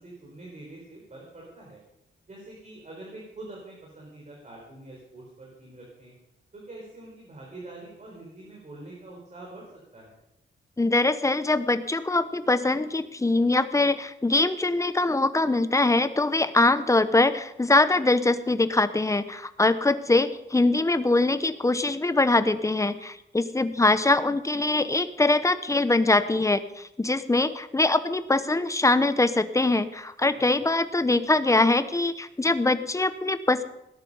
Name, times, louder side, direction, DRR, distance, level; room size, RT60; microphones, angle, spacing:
voice 1, 0.0-1.8 2.3-6.1 6.5-9.7 9.9-10.1 23.7-24.0 30.5-30.7, right 2 dB, 35° right, -2 dB, 4.1 m, -45 dB
voice 2, 10.8-33.6, left 2 dB, 15° left, 12 dB, 0.9 m, -23 dB
18.0 x 10.5 x 5.5 m, 0.87 s
wide cardioid pair, 115°, 20 cm